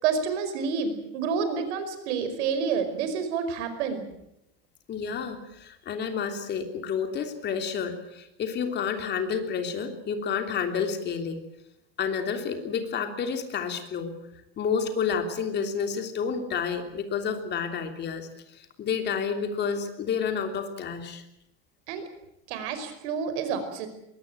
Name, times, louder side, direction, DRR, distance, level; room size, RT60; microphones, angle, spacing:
voice 1, 0.0-4.0 21.9-22.0 22.5-23.9, right 6 dB, 90° right, 9 dB, 5.3 m, -29 dB
voice 2, 4.9-11.4 12.0-14.1 14.6-21.2, left 6 dB, 30° left, 6 dB, 3.1 m, -30 dB
22.5 x 18.5 x 9.0 m, 0.84 s
cardioid pair, 160°, 33 cm